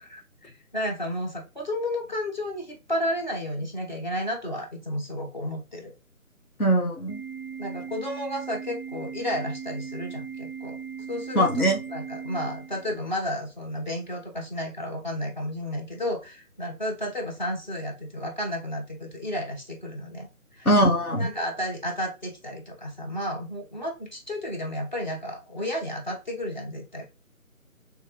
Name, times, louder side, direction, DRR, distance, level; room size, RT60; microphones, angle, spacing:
voice 1, 0.4-5.9 7.6-10.8 11.1-20.3 20.5-20.7 21.2-27.1, left 1 dB, 30° left, 1 dB, 0.9 m, -32 dB
voice 2, 6.6-7.2 11.3-11.8 20.6-21.3, right 1 dB, 80° left, 1 dB, 1.3 m, -21 dB
Organ, 7.1-13.1, right 6 dB, 55° left, 1.4 m, -38 dB
3.4 x 3.1 x 2.9 m, 0.29 s
figure-of-eight pair, 155°, 43 cm